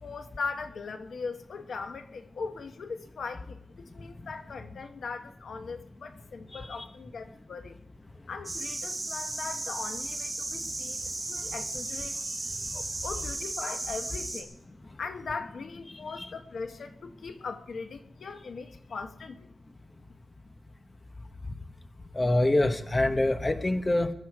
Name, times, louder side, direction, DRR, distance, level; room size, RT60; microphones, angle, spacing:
voice 1, 0.0-7.7 8.3-11.0 11.3-14.5 15.0-19.5, left 4 dB, 75° left, 1.2 m, -39 dB
sound 1, 8.4-14.4, right 2 dB, 15° right, 3.3 m, -35 dB
voice 2, 15.9-16.3 22.1-24.1, left 1 dB, 20° left, 1.0 m, -25 dB
22.0 x 12.0 x 4.8 m
wide cardioid pair, 145°, 0 cm